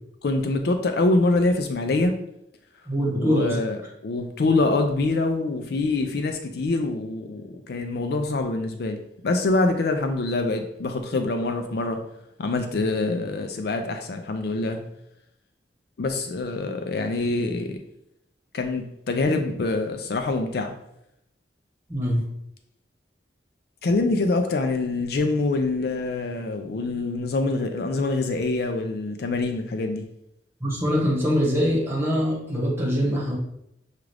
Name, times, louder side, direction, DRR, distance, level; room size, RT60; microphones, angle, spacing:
voice 1, 0.2-2.1 3.2-12.0 12.4-14.8 16.0-17.8 18.5-20.7 23.8-30.0, left 2 dB, 60° left, 6 dB, 0.4 m, -25 dB
voice 2, 2.9-3.5 21.9-22.2 30.6-33.4, equal, 15° right, -5 dB, 1.3 m, -23 dB
6.0 x 2.4 x 3.3 m, 0.79 s
head